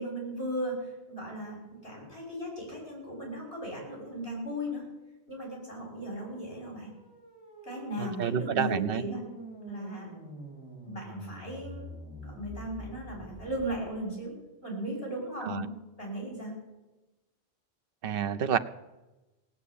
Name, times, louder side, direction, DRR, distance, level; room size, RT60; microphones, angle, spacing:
voice 1, 0.0-4.8 5.3-6.9 7.6-9.2 9.7-10.1 10.8-11.8 12.2-14.3 14.6-15.7 16.0-16.5, right 1 dB, 65° left, -1 dB, 6.7 m, -36 dB
sound 1, 6.7-13.8, equal, 30° right, 5.4 m, -46 dB
voice 2, 8.0-9.0 15.4-15.7 18.0-18.6, right 8 dB, 60° right, 11 dB, 0.9 m, -29 dB
18.0 x 8.3 x 8.4 m, 1.0 s
omnidirectional pair, 1.1 m